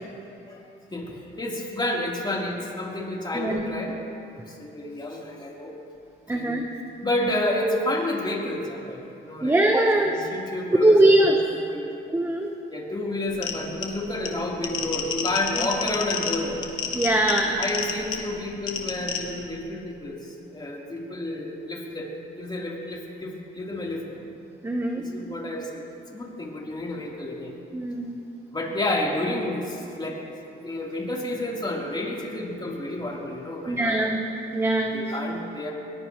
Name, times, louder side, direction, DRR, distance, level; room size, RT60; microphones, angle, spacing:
voice 1, 0.5-4.0 4.3-5.7 6.3-6.6 7.0-11.3 11.7-12.0 12.7-16.6 17.6-24.1 24.9-27.5 28.5-30.2 30.6-34.0 34.9-35.7, left 1 dB, 20° left, -3 dB, 3.8 m, -30 dB
voice 2, 3.3-3.7 6.3-6.7 9.4-10.1 10.8-11.4 12.1-12.5 16.9-17.6 24.6-25.1 27.7-28.2 33.7-34.3 34.5-35.0, right 1 dB, 10° right, 2 dB, 1.3 m, -21 dB
sound 1, 13.3-19.4, left 7 dB, 80° left, 1.8 m, -31 dB
22.0 x 19.5 x 3.2 m, 2.8 s
cardioid pair, 90°, 20 cm